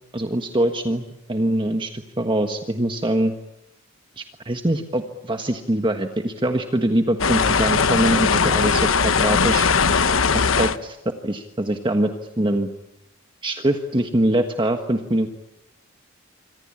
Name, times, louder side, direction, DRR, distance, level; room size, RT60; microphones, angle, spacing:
voice 1, 0.1-3.3 4.2-9.7 10.3-11.0 11.2-12.1 12.4-12.7 13.4-15.3, right 1 dB, 25° right, 5 dB, 1.4 m, -23 dB
sound 1, 7.2-10.8, left 5 dB, 75° left, 1.1 m, -19 dB
27.5 x 25.0 x 8.7 m, 0.88 s
head